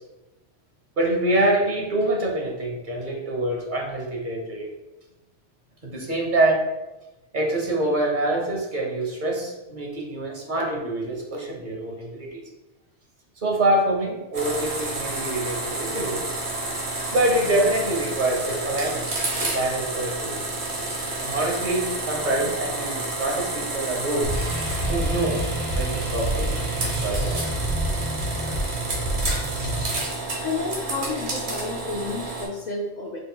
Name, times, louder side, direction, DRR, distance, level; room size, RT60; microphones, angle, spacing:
voice 1, 1.0-4.7 5.8-6.6 7.3-12.4 13.4-16.2 17.1-20.5 21.2-24.3 24.9-25.4 25.7-27.6, right 1 dB, 50° right, -1 dB, 1.1 m, -25 dB
sound 1, 14.3-32.5, right 2 dB, 80° right, 1.4 m, -30 dB
sound 2, 24.2-29.9, right 1 dB, 30° right, 1.0 m, -28 dB
voice 2, 30.4-33.2, left 3 dB, 50° left, -1 dB, 0.7 m, -30 dB
5.2 x 4.2 x 2.3 m, 1.0 s
omnidirectional pair, 1.1 m